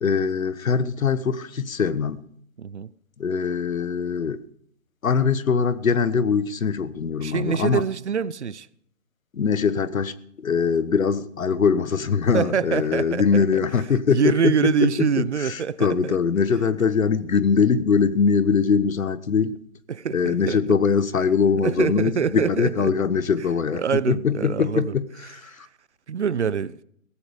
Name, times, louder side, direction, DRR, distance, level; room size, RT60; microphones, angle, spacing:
voice 1, 0.0-2.2 3.2-4.4 5.0-7.8 9.3-19.6 20.1-25.7, left 6 dB, 80° left, 1.3 m, -22 dB
voice 2, 2.6-2.9 7.2-8.7 12.3-13.4 14.1-16.2 19.9-20.6 21.6-22.9 23.7-25.0 26.1-26.7, right 7 dB, 55° right, 0.8 m, -25 dB
17.0 x 15.0 x 5.1 m
hypercardioid pair, 175°, 40 cm